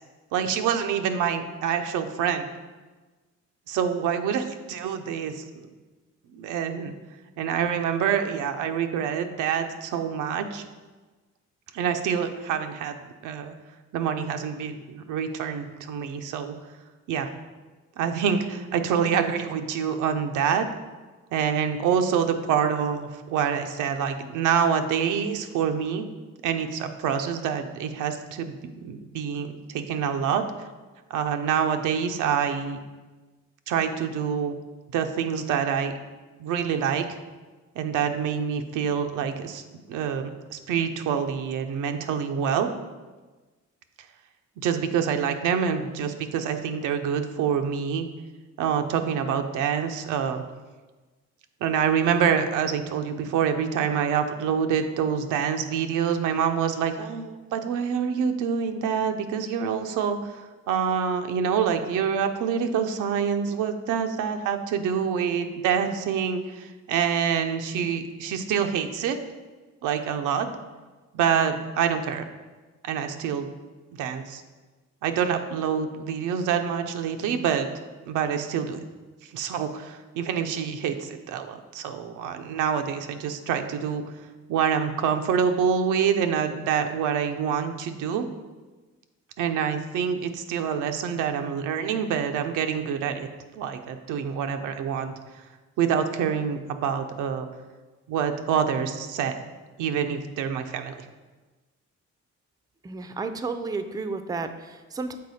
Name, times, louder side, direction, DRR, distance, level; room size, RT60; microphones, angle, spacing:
voice 1, 0.3-2.5 3.7-5.4 6.3-6.9 7.4-10.6 11.7-13.5 13.9-16.5 17.1-17.3 18.0-20.7 21.3-26.0 26.4-30.4 31.1-32.8 33.7-34.5 34.9-36.0 36.4-37.0 37.8-39.6 39.9-42.7 44.6-48.1 48.6-50.4 51.6-60.4 60.7-69.2 69.8-70.5 71.1-72.2 72.8-73.5 74.0-74.4 75.0-77.7 78.1-78.8 79.3-84.0 84.5-88.3 89.4-93.3 93.6-95.1 95.8-97.5 98.1-99.4 99.8-100.9, right 7 dB, 90° right, 6 dB, 0.6 m, -26 dB
voice 2, 102.8-105.2, right 4 dB, 15° right, 9 dB, 0.4 m, -32 dB
6.6 x 4.1 x 4.1 m, 1.3 s
cardioid pair, 90°, 30 cm